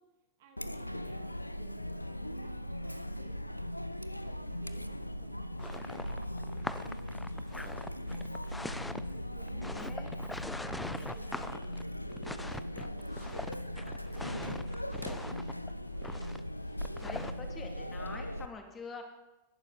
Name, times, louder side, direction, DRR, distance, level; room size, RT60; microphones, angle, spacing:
voice 1, 0.0-3.9 4.2-8.4 9.0-10.2 10.6-14.4 14.8-16.5, right 7 dB, 55° right, 1 dB, 2.4 m, -60 dB
Chatter, 0.6-18.5, equal, 85° left, 0.6 m, -39 dB
sound 1, 5.6-17.5, left 2 dB, 5° left, 0.6 m, -43 dB
voice 2, 9.5-10.1 17.0-19.0, left 4 dB, 20° left, 4 dB, 2.5 m, -46 dB
20.5 x 11.5 x 4.1 m, 1.1 s
figure-of-eight pair, 90°, 0 cm